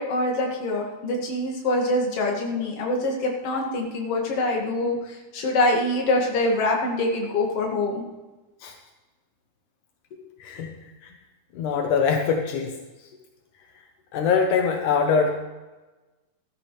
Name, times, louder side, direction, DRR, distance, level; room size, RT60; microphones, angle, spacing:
voice 1, 0.0-8.0, left 2 dB, 50° left, 0 dB, 2.8 m, -25 dB
voice 2, 10.4-10.7 11.6-12.7 14.1-15.3, left 5 dB, 80° left, 3 dB, 2.5 m, -22 dB
14.5 x 13.5 x 3.3 m, 1.2 s
omnidirectional pair, 3.6 m